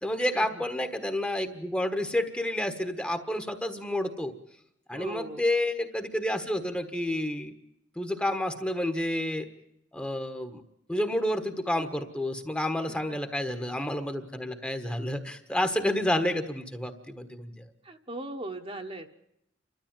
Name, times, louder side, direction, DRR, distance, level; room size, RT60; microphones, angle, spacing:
voice 1, 0.0-4.3 4.9-7.5 7.9-9.5 9.9-10.6 10.9-17.5, left 1 dB, 5° left, 7 dB, 1.4 m, -30 dB
voice 2, 4.9-5.4 12.9-13.2 17.8-19.1, right 1 dB, 30° right, 4 dB, 1.4 m, -39 dB
29.0 x 13.0 x 9.0 m, 0.79 s
head